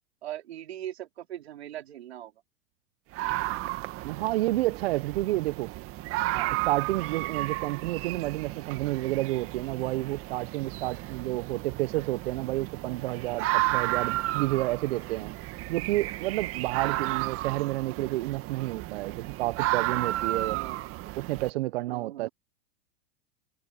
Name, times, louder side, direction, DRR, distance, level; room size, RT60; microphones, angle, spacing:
voice 1, 0.2-2.3 16.7-17.0 20.5-20.8 21.9-22.3, right 12 dB, 85° right, 3.2 m, -40 dB
sound 1, 3.1-21.5, right 18 dB, 45° right, 1.9 m, -33 dB
voice 2, 4.0-5.7 6.3-15.3 15.7-20.6 21.1-22.3, right 18 dB, 70° right, 0.9 m, -30 dB
hypercardioid pair, 110°, 32 cm